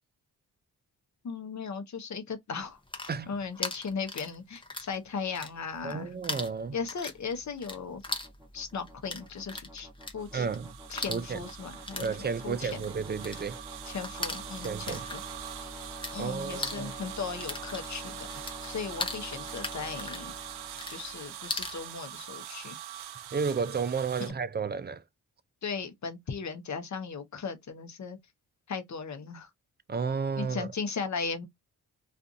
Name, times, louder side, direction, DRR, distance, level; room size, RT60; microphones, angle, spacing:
voice 1, 1.2-6.1 6.7-8.0 8.5-10.5 10.9-12.9 13.9-15.2 16.1-18.3 18.6-20.3 20.9-22.8 24.2-24.3 25.6-28.2 28.7-29.5 30.4-31.5, left 5 dB, 45° left, 0.8 m, -37 dB
sound 1, 2.7-5.0 5.2-6.0 6.2-16.2 16.4-21.8, left 2 dB, 15° left, 0.8 m, -39 dB
sound 2, 5.5-21.7, right 1 dB, 10° right, 1.1 m, -47 dB
voice 2, 5.8-6.7 10.3-10.7 11.1-11.4 12.0-13.6 14.6-15.0 16.2-16.9 23.3-25.0 29.9-30.7, right 5 dB, 25° right, 0.4 m, -32 dB
sound 3, 10.2-24.3, right 11 dB, 75° right, 0.5 m, -44 dB
2.5 x 2.4 x 2.6 m
supercardioid pair, 50°, 39 cm